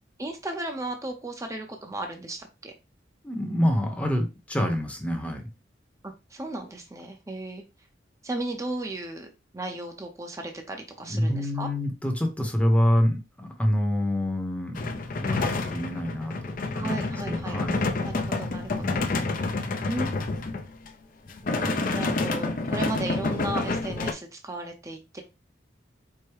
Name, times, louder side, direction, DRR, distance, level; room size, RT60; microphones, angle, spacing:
voice 1, 0.2-2.7 6.0-7.6 8.2-11.7 16.7-17.6 18.0-19.0 19.9-20.2 21.9-25.2, right 2 dB, 15° right, 4 dB, 0.6 m, -35 dB
voice 2, 3.2-5.4 11.1-14.9 15.2-17.9 18.8-19.3 21.6-22.0, equal, 10° left, 3 dB, 0.8 m, -27 dB
sound 1, 14.8-20.9 21.3-24.1, left 3 dB, 50° left, 0.6 m, -28 dB
4.7 x 2.1 x 4.6 m, 0.26 s
head